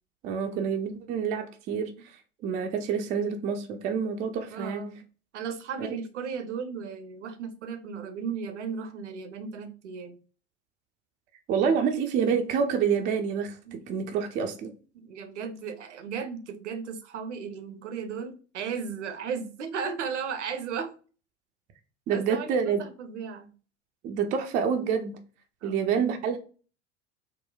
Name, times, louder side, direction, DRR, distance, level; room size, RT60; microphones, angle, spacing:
voice 1, 0.2-1.9 2.4-4.8 5.8-5.9 11.5-14.7 22.1-22.8 24.0-25.1 25.6-26.4, right 6 dB, 25° right, 0.3 m, -27 dB
voice 2, 4.5-5.0 5.3-10.2 13.7-14.1 14.9-20.9 22.1-23.5 25.6-26.0, right 6 dB, 70° right, 0.6 m, -36 dB
3.8 x 2.1 x 2.2 m
figure-of-eight pair, 75°, 37 cm